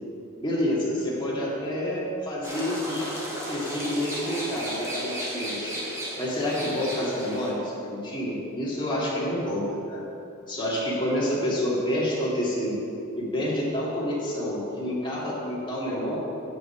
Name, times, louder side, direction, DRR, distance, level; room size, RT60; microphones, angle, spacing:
voice 1, 0.4-3.0 3.5-5.7 6.2-10.0 10.5-12.8 13.1-16.2, left 1 dB, 25° left, -6 dB, 2.2 m, -28 dB
sound 1, 2.4-7.5, equal, 15° right, 1.9 m, -34 dB
8.3 x 6.6 x 6.0 m, 2.8 s
head